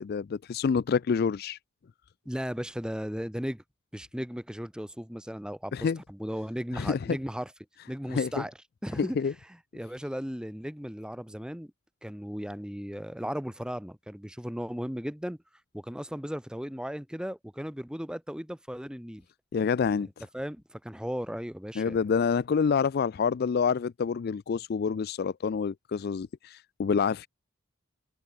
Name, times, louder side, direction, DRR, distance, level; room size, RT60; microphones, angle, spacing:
voice 1, 0.0-1.6 5.7-6.0 6.7-7.0 8.1-8.4 9.0-9.3 19.5-20.2 21.8-27.3, left 6 dB, 50° left, 0.4 m, -27 dB
voice 2, 2.2-3.6 3.9-7.5 7.9-8.5 8.8-9.2 9.7-11.7 12.0-15.4 15.7-19.2 20.3-22.0, equal, 5° right, 1.4 m, -36 dB
head